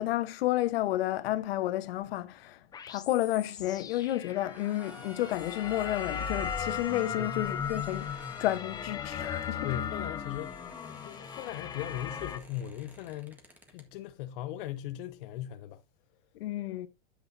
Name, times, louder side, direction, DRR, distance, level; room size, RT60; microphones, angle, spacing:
voice 1, 0.0-2.6 2.9-8.1 8.4-9.7 16.3-16.9, left 14 dB, 75° left, 1.1 m, -31 dB
sound 1, 2.7-12.4, left 7 dB, 15° left, 0.5 m, -37 dB
sound 2, 3.6-13.9, right 1 dB, 5° right, 1.4 m, -53 dB
voice 2, 9.6-10.7 11.0-13.4 13.7-15.8, left 12 dB, 60° left, 0.7 m, -38 dB
9.5 x 8.0 x 2.7 m
supercardioid pair, 155°, 30 cm